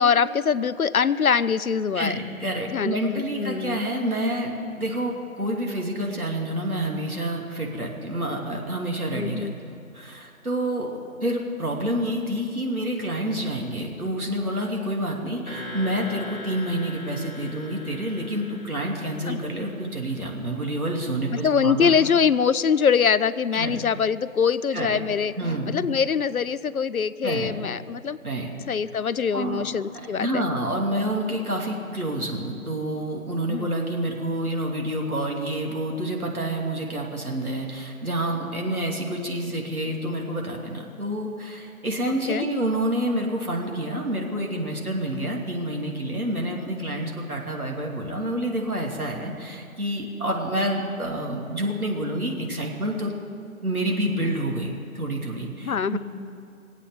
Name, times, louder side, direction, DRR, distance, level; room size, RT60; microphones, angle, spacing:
voice 1, 0.0-2.2 2.7-3.8 9.1-9.5 19.3-19.4 21.3-25.3 25.7-28.2 28.7-30.4 33.5-33.7 42.3-42.5 55.6-56.0, left 6 dB, 75° left, 16 dB, 0.6 m, -23 dB
voice 2, 1.9-21.9 23.5-23.8 24.7-25.0 25.4-25.7 27.2-27.5 28.2-28.5 28.9-29.0 29.3-53.1 53.6-56.0, right 1 dB, 85° right, 0 dB, 2.8 m, -28 dB
sound 1, 15.5-20.4, left 1 dB, 10° right, 2.2 m, -40 dB
20.5 x 8.4 x 7.8 m, 2.6 s
figure-of-eight pair, 155°, 43 cm